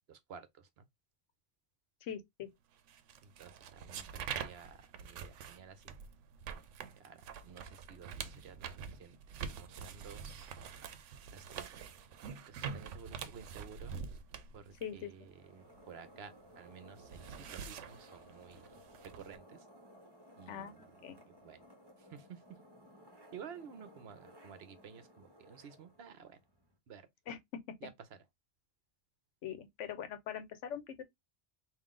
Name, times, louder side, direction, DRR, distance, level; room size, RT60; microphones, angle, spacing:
voice 1, 0.1-0.9 3.2-6.0 7.0-9.2 9.6-10.6 11.3-11.9 12.5-13.9 14.5-18.7 19.1-19.7 20.4-21.6 22.0-22.4 23.3-26.4 26.9-27.1 27.8-28.2, right 7 dB, 65° right, 0.9 m, -53 dB
voice 2, 2.0-2.5 14.8-15.3 20.5-21.2 27.3-27.4 29.4-31.0, left 9 dB, 90° left, 1.0 m, -43 dB
sound 1, 2.9-16.4 16.7-19.4, right 7 dB, 90° right, 0.9 m, -46 dB
sound 2, 15.2-26.8, equal, 20° right, 1.1 m, -59 dB
3.7 x 2.6 x 3.6 m
omnidirectional pair, 1.2 m